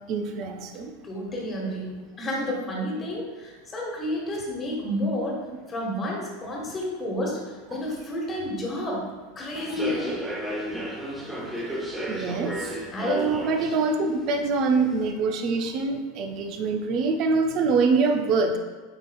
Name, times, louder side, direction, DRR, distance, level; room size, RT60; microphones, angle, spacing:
voice 1, 0.1-0.9 12.1-12.5 13.1-18.6, right 4 dB, 50° right, 5 dB, 0.5 m, -24 dB
voice 2, 1.0-1.9 2.2-5.4 5.7-9.1 9.3-10.2 12.9-13.2, left 1 dB, 25° left, -2 dB, 1.4 m, -30 dB
Human voice / Subway metro underground, 9.5-15.1, equal, 10° right, 0.9 m, -34 dB
7.8 x 2.9 x 2.3 m, 1.3 s
hypercardioid pair, 90°, 0 cm